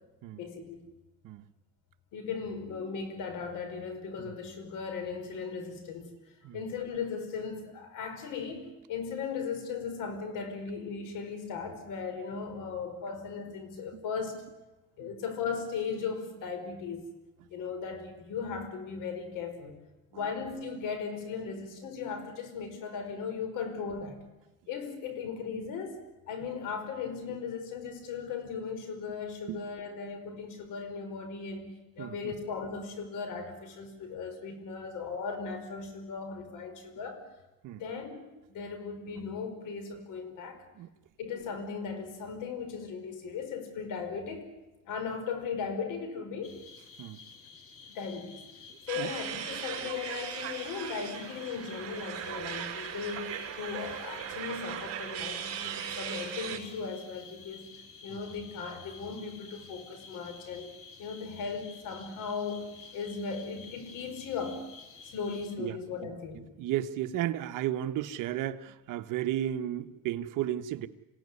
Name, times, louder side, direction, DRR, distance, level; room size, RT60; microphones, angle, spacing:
voice 1, 0.3-0.8 2.1-6.1 6.5-14.4 15.0-17.0 17.5-19.8 20.1-24.2 24.7-26.0 26.3-37.2 37.7-40.6 41.2-44.5 44.9-46.6 47.9-48.4 48.9-57.7 58.0-62.7 62.9-64.7 65.0-66.4, left 5 dB, 70° left, 8 dB, 5.4 m, -37 dB
voice 2, 32.0-32.3 37.6-37.8 40.8-40.9 47.0-47.2 49.0-49.1 58.1-58.2 65.6-65.8 66.6-70.9, right 12 dB, 65° right, 9 dB, 1.3 m, -34 dB
sound 1, 46.4-65.6, left 5 dB, 40° left, 3.4 m, -51 dB
sound 2, 48.9-56.6, right 9 dB, 45° right, 5.9 m, -38 dB
27.0 x 17.0 x 9.8 m, 1.0 s
cardioid pair, 145°, 33 cm